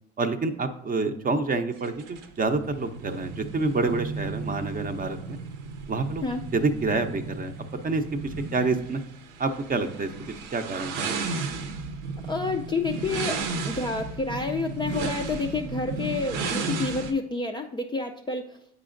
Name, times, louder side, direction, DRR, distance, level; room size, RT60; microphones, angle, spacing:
voice 1, 0.2-5.4 5.9-6.3 6.5-7.5 7.8-9.0 9.4-10.1 10.5-11.3, right 3 dB, 25° right, 7 dB, 0.6 m, -27 dB
sound 1, 1.8-17.1, right 4 dB, 80° right, 0.7 m, -34 dB
voice 2, 12.3-18.6, left 3 dB, 15° left, 2 dB, 0.3 m, -29 dB
8.1 x 4.9 x 2.5 m, 0.71 s
supercardioid pair, 80°, 34 cm